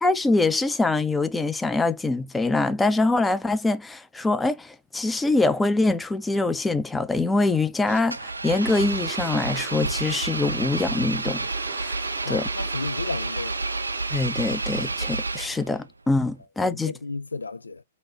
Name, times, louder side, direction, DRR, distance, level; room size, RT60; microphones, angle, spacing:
voice 1, 0.0-12.0 12.3-12.5 14.1-16.9, left 3 dB, 10° left, 0.5 m, -24 dB
sound 1, 7.9-15.3, right 10 dB, 50° right, 0.6 m, -40 dB
Engine, 8.1-15.8, right 2 dB, 90° right, 0.4 m, -30 dB
voice 2, 12.2-13.6 16.7-17.8, left 3 dB, 85° left, 0.3 m, -33 dB
4.0 x 2.7 x 4.0 m
figure-of-eight pair, 115°, 0 cm